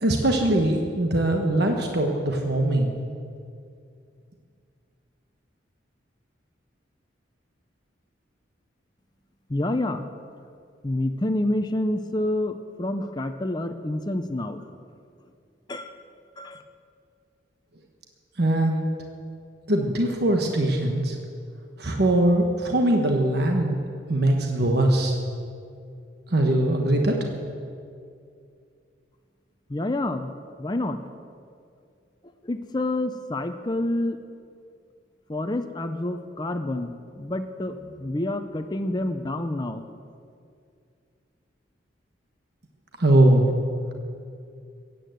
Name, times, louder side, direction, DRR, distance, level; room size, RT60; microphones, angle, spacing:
voice 1, 0.0-2.9 18.4-18.8 19.7-21.1 21.8-23.8 24.1-25.2 26.3-27.2 43.0-43.5, right 1 dB, 60° right, 2 dB, 1.3 m, -21 dB
voice 2, 9.5-10.0 10.8-14.6 15.7-15.9 16.4-16.6 29.7-30.3 30.6-31.0 32.4-34.2 35.3-39.9, left 1 dB, 20° left, 6 dB, 0.6 m, -28 dB
16.0 x 9.3 x 7.9 m, 2.4 s
head